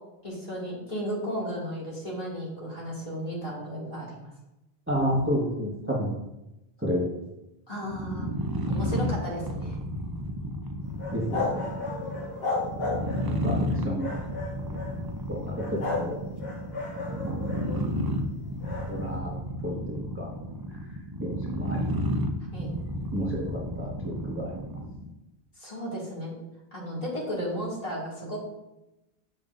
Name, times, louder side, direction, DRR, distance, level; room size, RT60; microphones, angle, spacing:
voice 1, 0.2-4.3 7.7-8.3 8.7-9.8 22.5-22.7 25.6-26.3 26.7-28.4, equal, 40° left, -6 dB, 2.2 m, -34 dB
voice 2, 4.9-6.1 6.8-7.1 11.1-11.6 13.3-14.1 15.3-15.4 16.0-16.1 17.2-17.3 18.9-19.3 19.6-20.3 21.2-21.9 23.1-24.6, equal, 15° right, -5 dB, 1.1 m, -30 dB
sound 1, 7.8-25.1, equal, 30° right, 0.5 m, -32 dB
sound 2, 11.0-13.4 14.0-14.9 15.6-16.1 16.4-17.8 18.6-18.9, left 3 dB, 70° left, 1.6 m, -33 dB
8.9 x 5.4 x 2.5 m, 0.94 s
omnidirectional pair, 1.0 m